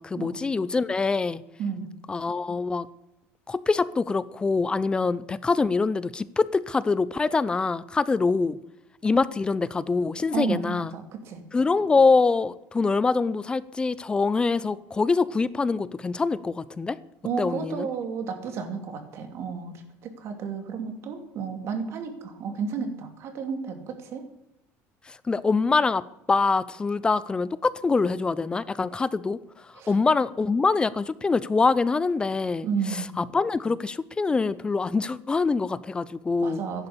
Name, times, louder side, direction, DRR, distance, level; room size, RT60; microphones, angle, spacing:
voice 1, 0.0-1.4 2.1-2.9 3.5-8.6 9.0-10.9 11.5-17.0 17.4-17.9 25.1-32.7 33.2-36.6, left 4 dB, 15° left, 18 dB, 0.5 m, -24 dB
voice 2, 10.3-11.4 17.2-24.3 29.8-29.9 32.6-33.2 36.4-36.9, right 6 dB, 50° right, 6 dB, 2.8 m, -32 dB
14.0 x 11.0 x 7.2 m, 0.87 s
cardioid pair, 145°, 6 cm